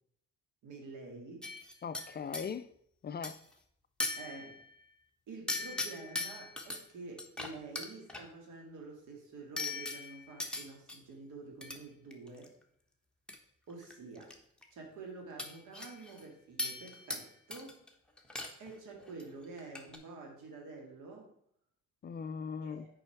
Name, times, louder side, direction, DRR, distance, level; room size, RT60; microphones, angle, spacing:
voice 1, 0.6-1.5 4.2-4.6 5.3-12.5 13.7-14.4 14.7-17.8 18.6-21.3 22.6-22.9, right 3 dB, 80° right, 2.2 m, -48 dB
sound 1, 1.4-2.5 3.2-3.5 4.0-4.7 5.5-6.8 7.2-8.2 9.6-11.0 11.6-11.8 12.1-12.5 13.3-13.4 13.7-14.3 14.6-14.7 15.4-16.2 16.6-17.3 17.5-17.9 18.2-18.7 19.0-19.2 19.6-20.0, left 2 dB, 5° left, 1.2 m, -39 dB
voice 2, 1.8-2.7 3.0-3.4 22.0-22.9, left 6 dB, 35° left, 0.4 m, -39 dB
6.6 x 5.3 x 4.6 m
cardioid pair, 90°, 30 cm